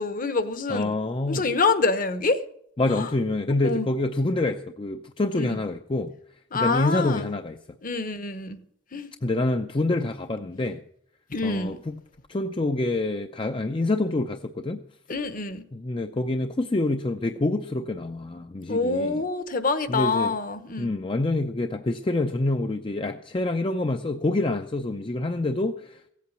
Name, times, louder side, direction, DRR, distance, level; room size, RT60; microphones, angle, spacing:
voice 1, 0.0-0.9 1.3-2.4 2.9-3.1 3.6-3.9 5.4-5.6 6.5-7.3 7.8-8.6 8.9-9.1 11.3-11.8 15.1-15.6 18.7-20.9, left 3 dB, 50° left, 1.1 m, -26 dB
voice 2, 0.7-1.5 2.8-6.1 6.5-7.6 9.2-10.8 11.4-12.0 12.3-14.8 15.7-19.2 19.9-20.4 20.8-26.1, left 2 dB, 30° left, 0.5 m, -26 dB
16.0 x 8.5 x 7.3 m
head